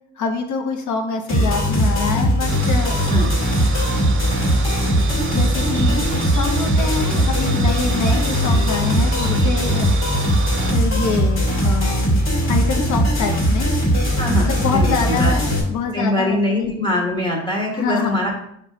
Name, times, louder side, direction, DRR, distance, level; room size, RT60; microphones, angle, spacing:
voice 1, 0.2-3.0 5.3-9.9 10.7-12.2 12.5-13.7 14.4-16.7 17.7-18.2, left 5 dB, 70° left, 4 dB, 0.6 m, -25 dB
sound 1, 1.3-15.6, equal, 45° left, 1.5 m, -19 dB
sound 2, 2.5-10.8, right 5 dB, 40° right, 0.5 m, -30 dB
voice 2, 14.2-15.3 15.9-18.3, left 1 dB, 15° left, -2 dB, 1.3 m, -23 dB
4.8 x 2.2 x 3.7 m, 0.72 s
cardioid pair, 90°, 30 cm